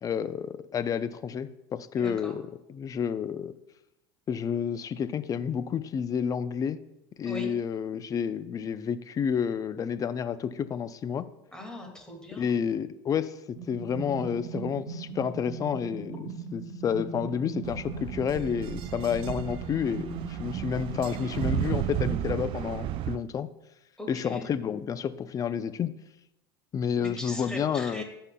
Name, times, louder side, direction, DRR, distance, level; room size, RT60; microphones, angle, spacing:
voice 1, 0.0-2.4 2.7-3.5 4.3-6.8 7.2-11.2 12.4-23.5 24.1-25.9 26.7-28.0, left 7 dB, 30° left, 13 dB, 0.5 m, -30 dB
voice 2, 2.0-2.4 7.2-7.5 11.5-12.6 24.0-24.5 27.0-28.0, left 1 dB, 5° left, 1 dB, 2.2 m, -40 dB
sound 1, 13.5-22.5, right 6 dB, 30° right, 1.8 m, -39 dB
sound 2, 17.6-23.2, right 11 dB, 50° right, 0.4 m, -33 dB
14.5 x 5.6 x 2.3 m, 0.88 s
supercardioid pair, 100°, 12 cm